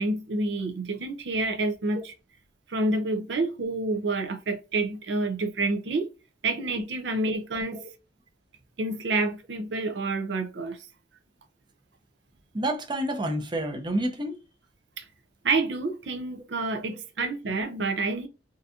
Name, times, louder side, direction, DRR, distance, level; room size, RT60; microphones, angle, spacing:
voice 1, 0.0-2.1 2.7-6.1 6.4-7.8 8.8-10.8 15.0-15.1 15.4-18.3, right 2 dB, 75° right, 0.6 m, -28 dB
voice 2, 12.5-14.4 17.2-17.3, right 1 dB, 25° right, 0.7 m, -29 dB
3.8 x 2.7 x 2.4 m
head